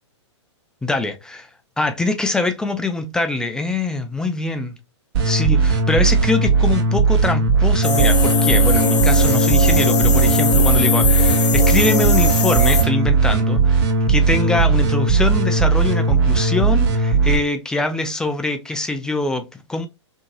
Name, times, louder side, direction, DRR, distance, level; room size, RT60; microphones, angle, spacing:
voice 1, 0.8-1.5 1.8-4.7 5.2-19.9, left 2 dB, 5° left, 0.3 m, -23 dB
sound 1, 5.1-17.4, right 4 dB, 50° right, 0.9 m, -17 dB
sound 2, 7.8-12.8, left 5 dB, 65° left, 0.8 m, -20 dB
2.7 x 2.7 x 2.5 m
figure-of-eight pair, 115°, 15 cm